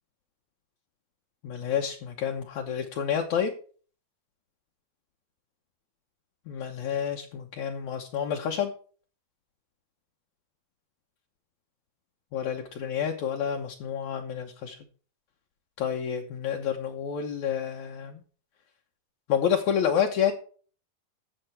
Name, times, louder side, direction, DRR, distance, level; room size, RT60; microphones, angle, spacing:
voice 1, 1.4-3.5 6.5-8.7 12.3-14.8 15.8-18.2 19.3-20.3, left 8 dB, 70° left, 1 dB, 1.9 m, -29 dB
13.0 x 7.9 x 4.3 m, 0.41 s
omnidirectional pair, 4.6 m